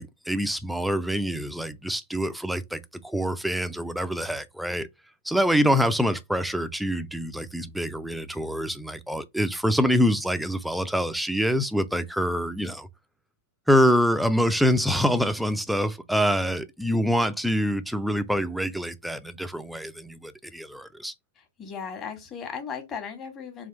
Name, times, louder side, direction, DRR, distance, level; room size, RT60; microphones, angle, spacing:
voice 1, 0.0-4.9 5.2-12.9 13.7-21.1, equal, ahead, 0.4 m, -25 dB
voice 2, 21.6-23.7, left 6 dB, 30° left, 1.3 m, -36 dB
3.5 x 2.5 x 4.4 m
hypercardioid pair, 115°, 0 cm